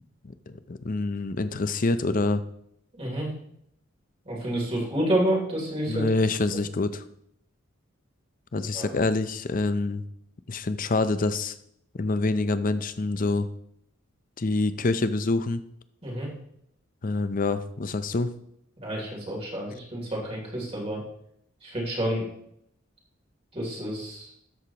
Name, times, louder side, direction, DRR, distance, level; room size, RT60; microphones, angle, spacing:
voice 1, 0.2-2.4 5.9-7.0 8.5-10.0 10.5-11.6 11.9-13.5 14.4-15.6 17.0-18.3, left 3 dB, 40° left, 12 dB, 0.6 m, -26 dB
voice 2, 3.0-3.3 4.2-6.1 8.7-8.9 16.0-16.3 18.8-21.0 21.6-22.2 23.5-24.3, right 1 dB, 30° right, -3 dB, 3.1 m, -29 dB
13.0 x 8.0 x 3.0 m, 0.72 s
head